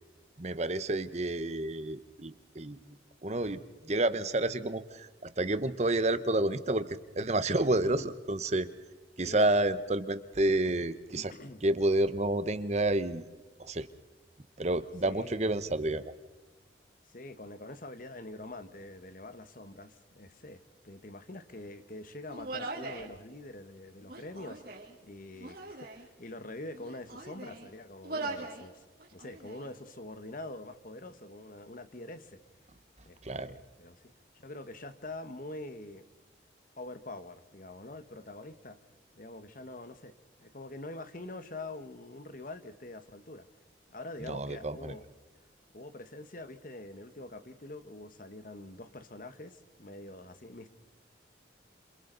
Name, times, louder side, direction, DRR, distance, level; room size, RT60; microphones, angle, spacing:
voice 1, 0.4-2.8 3.2-8.7 9.2-11.3 11.6-13.2 13.6-13.9 14.6-16.1 33.2-33.5 44.2-44.9, right 2 dB, 35° right, 1.0 m, -29 dB
voice 2, 7.6-8.1 9.2-9.5 11.1-11.6 15.0-15.5 17.0-28.8 29.1-32.4 33.0-36.0 36.8-38.8 39.2-40.1 40.4-43.5 43.9-45.1 45.7-50.7, left 2 dB, 45° left, 1.3 m, -45 dB
Human voice, 22.3-23.1 24.0-24.9 25.4-26.0 26.7-27.7 28.0-28.6 29.0-29.7, right 3 dB, 55° right, 3.4 m, -40 dB
28.0 x 27.0 x 4.0 m
head